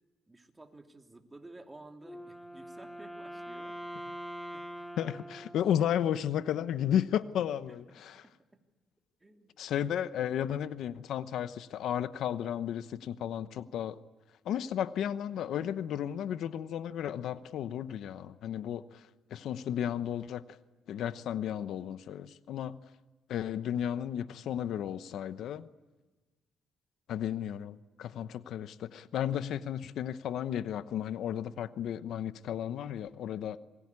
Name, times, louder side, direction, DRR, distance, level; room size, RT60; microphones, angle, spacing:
voice 1, 0.3-4.2 4.5-4.9 7.7-8.6 9.2-9.5 33.2-33.5, right 2 dB, 15° right, 4 dB, 3.0 m, -54 dB
Wind instrument woodwind instrument, 2.0-6.3, equal, 10° left, 3.0 m, -44 dB
voice 2, 5.0-8.1 9.6-14.0 14.4-19.0 19.3-20.4 20.9-22.8 23.3-25.7 27.1-33.6, left 10 dB, 75° left, 13 dB, 1.0 m, -33 dB
27.5 x 22.0 x 9.7 m, 1.2 s
cardioid pair, 90°, 0 cm